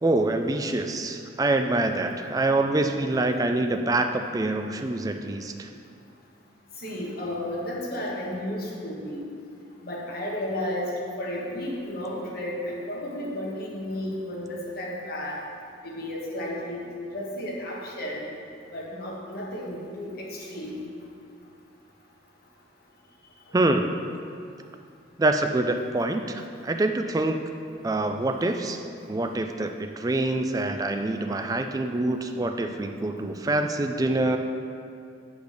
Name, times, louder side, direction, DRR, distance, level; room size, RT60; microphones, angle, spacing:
voice 1, 0.0-5.7 23.5-24.0 25.2-27.4 27.8-28.8 29.1-34.4, right 2 dB, 20° right, 6 dB, 0.3 m, -25 dB
voice 2, 6.8-9.2 9.8-10.9 11.2-15.4 15.8-16.8 17.1-18.2 18.7-20.8, left 1 dB, 50° left, -4 dB, 1.3 m, -33 dB
8.2 x 3.4 x 6.5 m, 2.4 s
head